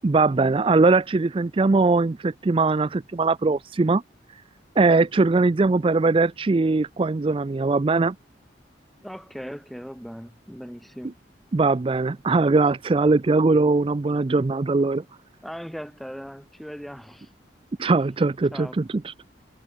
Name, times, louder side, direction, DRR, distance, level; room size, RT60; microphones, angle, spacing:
voice 1, 0.0-4.0 4.8-8.1 11.5-15.0 17.8-19.1, right 3 dB, 30° right, 0.4 m, -21 dB
voice 2, 9.0-11.2 15.4-17.3 18.5-18.8, equal, ahead, 2.9 m, -38 dB
head